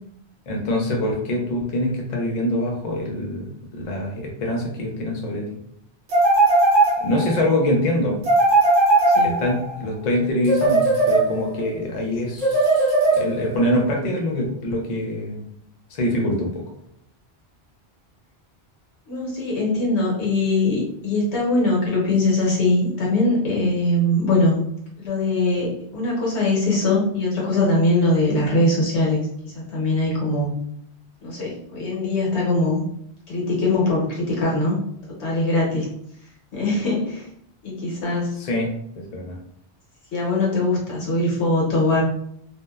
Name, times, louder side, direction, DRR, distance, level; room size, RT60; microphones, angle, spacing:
voice 1, 0.5-5.5 7.0-8.2 9.2-15.4 15.9-16.6 38.4-39.4, left 1 dB, 50° left, -1 dB, 0.6 m, -24 dB
sound 1, 6.1-7.4 8.2-9.8 10.4-11.6 12.4-13.6, right 2 dB, 55° right, 0.9 m, -18 dB
voice 2, 19.1-24.6 25.0-30.5 31.2-32.8 33.3-34.8 35.2-35.9 36.5-37.3 37.6-38.4 40.1-42.0, left 2 dB, 90° left, -4 dB, 1.2 m, -21 dB
2.7 x 2.0 x 2.2 m, 0.70 s
omnidirectional pair, 1.1 m